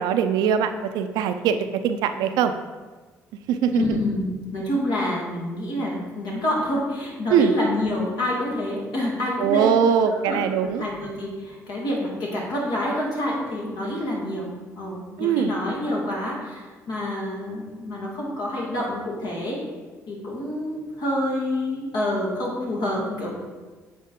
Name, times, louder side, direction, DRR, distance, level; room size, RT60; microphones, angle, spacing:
voice 1, 0.0-2.5 3.5-4.0 7.3-7.5 9.4-10.8 15.2-15.5, right 8 dB, 80° right, 9 dB, 0.4 m, -22 dB
voice 2, 3.7-9.7 10.1-14.5 14.8-19.6 20.1-23.4, left 1 dB, 75° left, -3 dB, 1.9 m, -27 dB
8.5 x 3.6 x 3.7 m, 1.3 s
hypercardioid pair, 55°, 7 cm